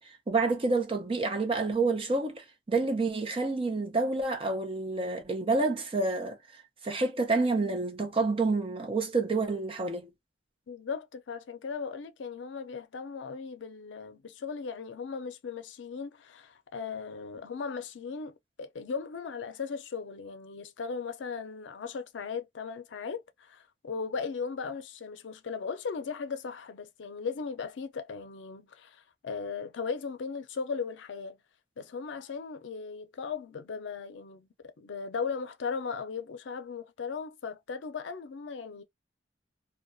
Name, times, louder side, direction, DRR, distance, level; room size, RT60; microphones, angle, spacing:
voice 1, 0.3-6.4 6.8-10.1, right 3 dB, 30° right, 0.5 m, -28 dB
voice 2, 10.7-31.4 31.8-38.8, left 5 dB, 85° left, 0.5 m, -37 dB
2.3 x 2.2 x 2.5 m
head